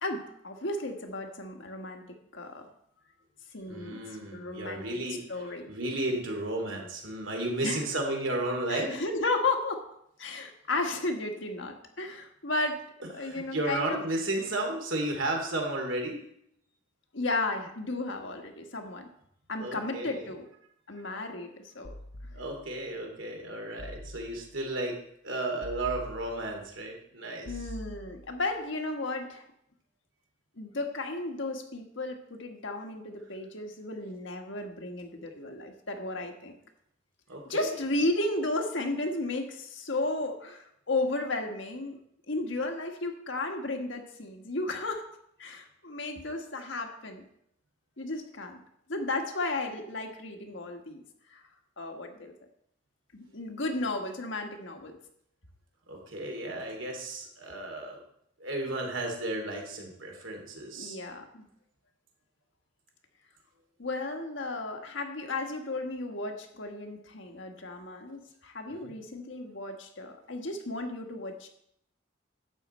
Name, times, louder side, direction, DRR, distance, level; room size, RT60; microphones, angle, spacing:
voice 1, 0.0-2.0 2.3-2.7 3.5-4.0 4.3-4.9 5.3-5.7 7.6-7.8 8.7-9.8 10.2-12.8 13.1-14.0 17.1-19.1 19.5-20.5 20.9-21.9 22.2-22.3 27.4-29.4 30.6-36.5 37.5-42.0 42.3-45.0 45.4-47.2 48.0-48.6 48.9-51.0 51.3-51.4 51.8-52.3 53.1-55.0 60.8-61.5 63.8-71.5, left 2 dB, 70° left, 4 dB, 1.5 m, -34 dB
voice 2, 3.7-9.0 13.2-16.2 19.6-20.3 22.3-25.0 25.2-27.5 37.3-37.8 55.9-58.0 58.4-61.0 68.8-68.9, right 2 dB, 75° right, 2 dB, 2.7 m, -33 dB
sound 1, 21.8-22.9 23.8-24.7 25.6-26.7 27.4-28.5, left 1 dB, 45° left, 0.8 m, -45 dB
11.5 x 8.5 x 4.4 m, 0.73 s
head